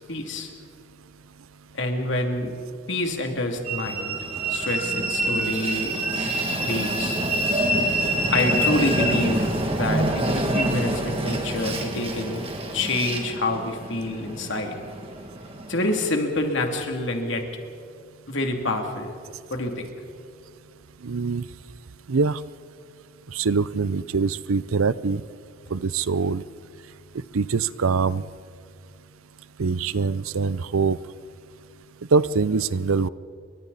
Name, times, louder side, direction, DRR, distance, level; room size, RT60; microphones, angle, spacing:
voice 1, 0.1-0.5 1.7-2.5 2.9-4.2 4.5-6.0 6.6-7.2 8.3-12.4 12.7-14.8 15.7-17.4 18.3-19.1 19.5-19.9, left 2 dB, 60° left, 3 dB, 2.7 m, -27 dB
Train, 3.6-16.1, right 1 dB, 25° right, 2.3 m, -26 dB
voice 2, 21.0-21.5 22.1-22.4 23.3-25.2 25.7-26.4 27.3-28.2 29.6-31.0 32.1-33.1, right 4 dB, 80° right, 18 dB, 0.6 m, -23 dB
29.5 x 24.0 x 4.2 m, 2.3 s
head